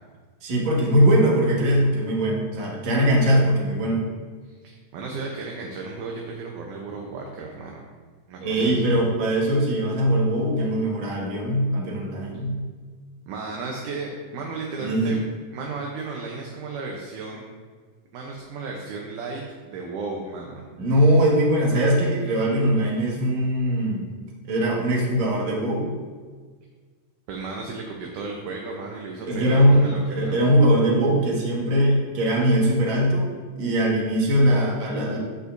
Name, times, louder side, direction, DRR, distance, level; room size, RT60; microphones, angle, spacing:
voice 1, 0.4-4.1 8.4-12.6 14.8-15.2 20.8-24.1 24.4-26.0 29.2-33.3 33.6-35.2, equal, 55° right, -3 dB, 2.6 m, -21 dB
voice 2, 4.4-7.9 8.3-8.9 13.3-15.2 15.5-17.4 18.1-20.6 27.3-30.7, right 3 dB, 75° right, 0 dB, 2.1 m, -34 dB
14.0 x 5.5 x 2.6 m, 1.5 s
omnidirectional pair, 4.0 m